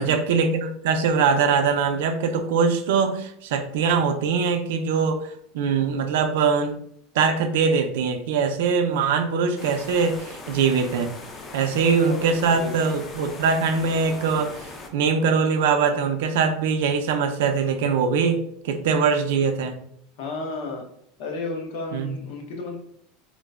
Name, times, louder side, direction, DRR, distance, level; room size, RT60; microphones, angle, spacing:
voice 1, 0.0-6.8 7.1-11.1 11.5-19.8 21.9-22.2, right 5 dB, 80° right, 7 dB, 0.4 m, -22 dB
sound 1, 9.6-14.9, left 3 dB, 20° left, 0.3 m, -40 dB
voice 2, 12.0-12.7 20.2-20.8 21.2-22.8, left 3 dB, 65° left, 1 dB, 0.7 m, -32 dB
3.7 x 2.0 x 2.3 m, 0.68 s
supercardioid pair, 170°, 0 cm